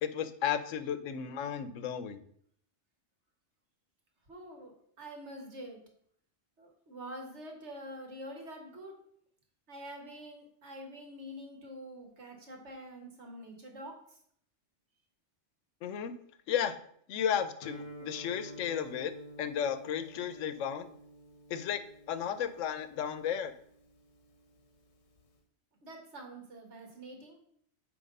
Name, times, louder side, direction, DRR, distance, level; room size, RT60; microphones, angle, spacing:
voice 1, 0.0-2.2 15.8-16.1 16.5-16.8 17.1-19.1 19.4-20.9 21.5-23.6, left 8 dB, 90° left, 12 dB, 1.0 m, -34 dB
voice 2, 4.3-5.8 6.6-8.9 9.7-13.9 25.8-27.4, equal, 65° right, 2 dB, 1.8 m, -46 dB
Guitar, 17.6-25.4, equal, 65° left, 1.3 m, -51 dB
8.6 x 3.3 x 5.3 m, 0.66 s
omnidirectional pair, 1.3 m